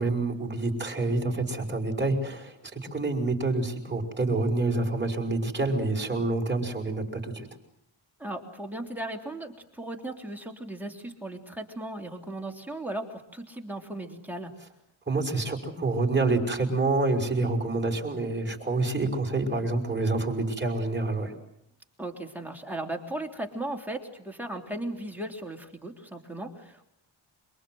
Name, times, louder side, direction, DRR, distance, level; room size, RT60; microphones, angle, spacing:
voice 1, 0.0-7.5 15.1-21.3, right 2 dB, 20° right, 1 dB, 5.6 m, -27 dB
voice 2, 8.2-14.5 22.0-26.8, right 1 dB, 5° right, 1 dB, 3.4 m, -37 dB
27.5 x 23.5 x 7.9 m, 0.77 s
wide cardioid pair, 115°, 50 cm